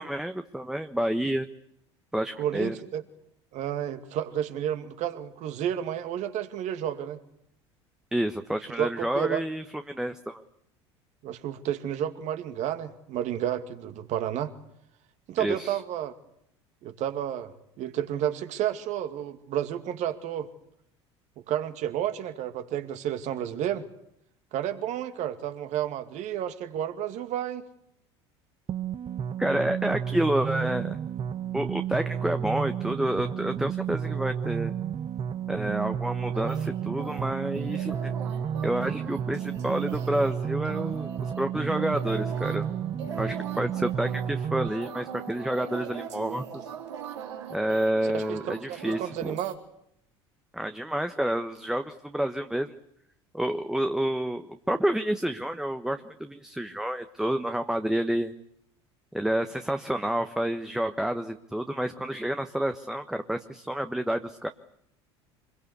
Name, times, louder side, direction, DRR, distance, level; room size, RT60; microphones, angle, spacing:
voice 1, 0.0-1.5 2.1-2.7 8.1-10.4 15.4-15.8 29.4-31.0 31.5-34.7 35.5-38.1 38.6-42.7 43.2-46.7 47.5-49.4 50.5-52.7 53.3-58.3 59.1-64.5, right 1 dB, 5° right, 7 dB, 1.2 m, -29 dB
voice 2, 2.4-3.0 3.5-7.2 8.8-9.4 11.2-14.5 15.3-16.1 16.8-17.5 17.8-20.5 21.4-23.8 24.5-27.6 48.1-49.6, right 10 dB, 55° right, 8 dB, 2.4 m, -31 dB
sound 1, 28.7-44.7, right 8 dB, 40° right, 1.3 m, -31 dB
sound 2, 36.3-49.5, right 7 dB, 85° right, 3.6 m, -41 dB
25.5 x 22.0 x 8.2 m, 0.76 s
hypercardioid pair, 75°, 14 cm